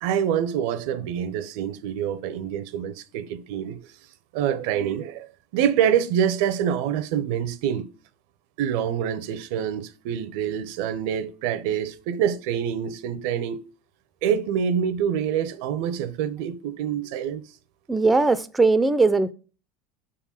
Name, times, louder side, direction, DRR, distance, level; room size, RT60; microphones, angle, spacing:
voice 1, 0.0-3.8 4.3-7.9 8.6-13.6 14.2-17.4, right 9 dB, 70° right, 0.7 m, -26 dB
voice 2, 17.9-19.3, right 3 dB, 15° right, 0.5 m, -19 dB
6.8 x 3.8 x 5.6 m
supercardioid pair, 110°, 0 cm